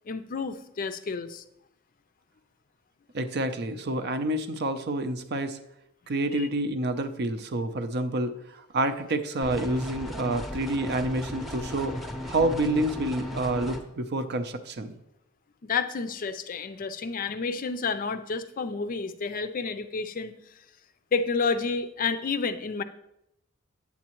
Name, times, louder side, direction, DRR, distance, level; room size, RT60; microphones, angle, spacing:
voice 1, 0.1-1.4 6.3-6.5 15.6-20.3 21.1-22.8, left 4 dB, 40° left, 11 dB, 0.4 m, -30 dB
voice 2, 3.1-5.6 6.1-12.0 12.3-15.0, right 1 dB, 55° right, 10 dB, 0.6 m, -28 dB
sound 1, 9.4-13.8, left 1 dB, ahead, 0.7 m, -36 dB
8.3 x 7.3 x 3.0 m, 0.81 s
head